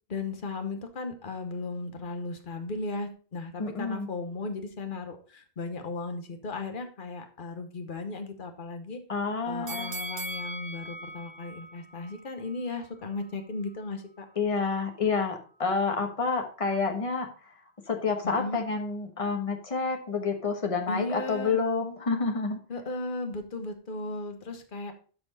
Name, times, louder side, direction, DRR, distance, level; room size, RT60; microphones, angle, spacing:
voice 1, 0.1-9.0 9.5-14.3 18.2-18.6 20.9-21.6 22.7-24.9, left 3 dB, 55° left, 6 dB, 1.3 m, -36 dB
voice 2, 3.6-4.1 9.1-9.9 14.4-17.6 17.9-22.6, left 4 dB, 35° left, 4 dB, 1.2 m, -29 dB
sound 1, 9.7-12.8 13.2-13.3, right 2 dB, 45° right, 0.8 m, -39 dB
12.5 x 4.4 x 4.0 m, 0.40 s
omnidirectional pair, 1.0 m